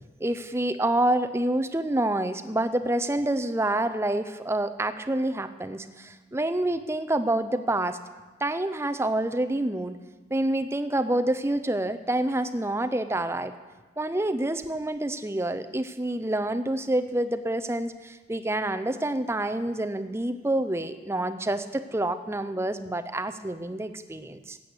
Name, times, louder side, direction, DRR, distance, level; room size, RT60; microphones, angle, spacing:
voice 1, 0.2-8.0 8.4-10.0 10.3-13.5 14.0-24.6, right 1 dB, 15° right, 11 dB, 0.5 m, -27 dB
13.0 x 8.4 x 8.0 m, 1.3 s
head